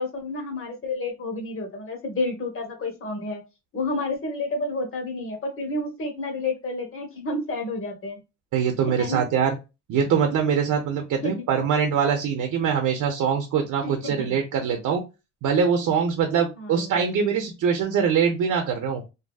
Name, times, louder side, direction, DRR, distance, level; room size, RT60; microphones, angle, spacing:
voice 1, 0.0-3.4 3.7-8.2 8.8-9.2 11.2-11.5 13.8-14.4 16.6-17.3, left 2 dB, 45° left, 3 dB, 1.1 m, -30 dB
voice 2, 8.5-9.6 9.9-15.0 15.4-19.0, right 7 dB, 75° right, 4 dB, 0.6 m, -23 dB
2.7 x 2.7 x 2.3 m, 0.27 s
cardioid pair, 90°, 30 cm